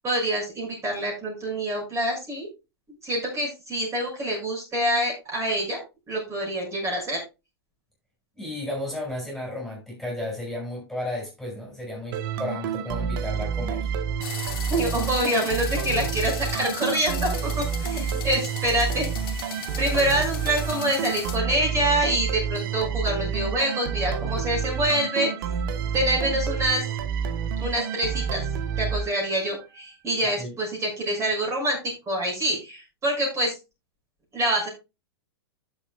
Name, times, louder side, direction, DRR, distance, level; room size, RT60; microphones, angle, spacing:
voice 1, 0.0-2.5 3.0-5.8 6.1-7.2 14.7-17.5 17.8-19.5 19.8-25.3 25.9-26.8 27.6-28.4 28.8-31.8 32.1-33.6 34.3-34.7, right 1 dB, 20° right, 6.5 m, -26 dB
voice 2, 8.3-13.9 17.9-18.2 30.4-30.5, left 1 dB, ahead, 6.2 m, -33 dB
sound 1, 12.1-29.6, right 7 dB, 55° right, 1.3 m, -29 dB
sound 2, 14.2-21.4, left 9 dB, 60° left, 2.6 m, -37 dB
15.5 x 7.6 x 2.3 m
hypercardioid pair, 110°, 13 cm